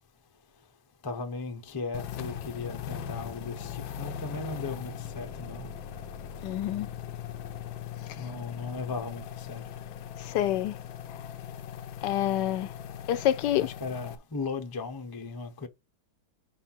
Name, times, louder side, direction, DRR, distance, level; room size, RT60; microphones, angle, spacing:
voice 1, 1.0-5.9 8.2-9.6 13.6-15.7, left 4 dB, 25° left, 0.4 m, -37 dB
sound 1, 1.9-14.2, left 8 dB, 90° left, 1.5 m, -40 dB
voice 2, 6.4-6.9 10.2-10.8 12.0-12.7 13.1-13.7, left 12 dB, 75° left, 1.1 m, -27 dB
5.2 x 4.3 x 5.7 m
omnidirectional pair, 2.0 m